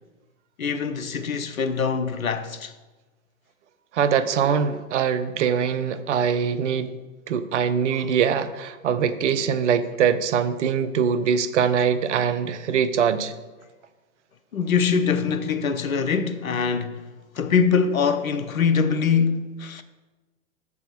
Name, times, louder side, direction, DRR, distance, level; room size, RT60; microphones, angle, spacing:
voice 1, 0.6-2.7 14.5-17.0 17.4-19.8, left 6 dB, 85° left, 0.7 m, -23 dB
voice 2, 3.9-6.9 7.3-13.3, right 7 dB, 60° right, 0.6 m, -23 dB
6.8 x 3.6 x 5.9 m
figure-of-eight pair, 110°, 40 cm